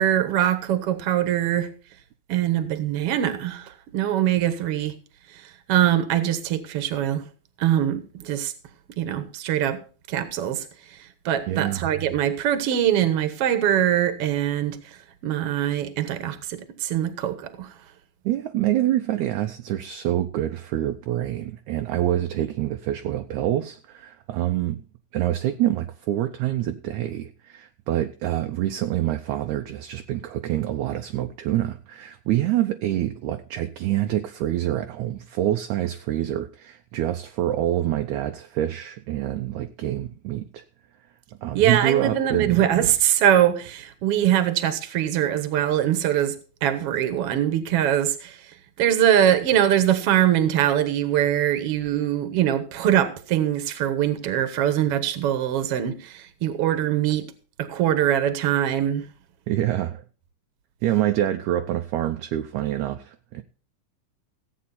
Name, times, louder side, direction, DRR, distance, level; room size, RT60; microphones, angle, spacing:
voice 1, 0.0-1.7 2.3-5.0 5.7-7.2 7.6-8.5 9.0-9.8 10.1-10.7 11.3-14.8 15.2-17.7 41.5-48.4 48.8-57.3 57.6-59.0, right 11 dB, 55° right, 1.9 m, -22 dB
voice 2, 11.5-11.9 18.3-24.8 25.1-40.6 41.4-42.6 59.5-60.0 60.8-63.4, right 13 dB, 75° right, 1.9 m, -26 dB
16.0 x 8.5 x 4.2 m
omnidirectional pair, 3.8 m